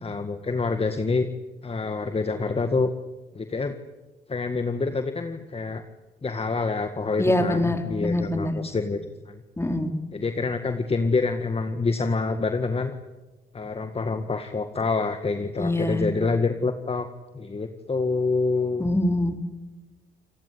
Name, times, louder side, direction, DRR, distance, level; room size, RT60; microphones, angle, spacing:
voice 1, 0.0-1.3 1.6-2.9 3.3-3.8 4.3-5.8 6.2-9.0 9.3-9.4 10.1-12.9 13.5-17.1 17.3-18.9, left 4 dB, 30° left, 8 dB, 1.9 m, -26 dB
voice 2, 7.2-8.5 9.6-9.9 15.6-16.0 18.8-19.4, left 1 dB, 15° left, 5 dB, 4.4 m, -24 dB
29.0 x 17.5 x 9.7 m, 1.2 s
cardioid pair, 75°, 20 cm